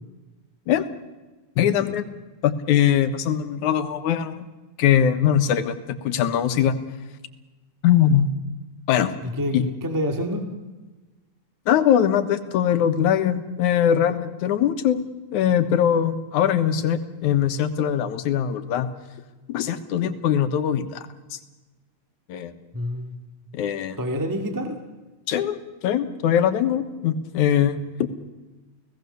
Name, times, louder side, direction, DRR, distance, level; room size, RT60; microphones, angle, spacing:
voice 1, 1.6-2.1 2.4-4.4 4.8-6.8 7.8-8.3 8.9-9.2 9.5-9.7 11.7-15.0 15.3-18.9 19.5-21.4 22.3-22.5 23.5-24.0 25.3-25.6 25.8-28.1, left 9 dB, 80° left, 10 dB, 2.6 m, -21 dB
voice 2, 9.2-10.5 22.7-23.2 24.0-24.8, equal, 5° right, 5 dB, 1.8 m, -27 dB
30.0 x 18.0 x 6.9 m, 1.2 s
omnidirectional pair, 3.5 m